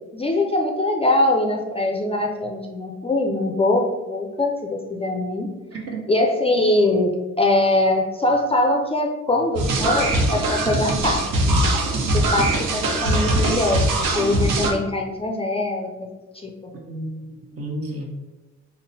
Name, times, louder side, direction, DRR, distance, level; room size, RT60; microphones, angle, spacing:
voice 1, 0.1-5.5 6.1-11.6 12.1-13.9 14.1-15.9 16.4-16.5, left 2 dB, 20° left, 1 dB, 0.4 m, -22 dB
voice 2, 5.7-6.0 16.9-18.0, right 2 dB, 50° right, 0 dB, 1.0 m, -32 dB
sound 1, 9.6-14.7, right 1 dB, 75° right, 0.8 m, -21 dB
3.7 x 2.1 x 4.0 m, 1.1 s
cardioid pair, 90°, 30 cm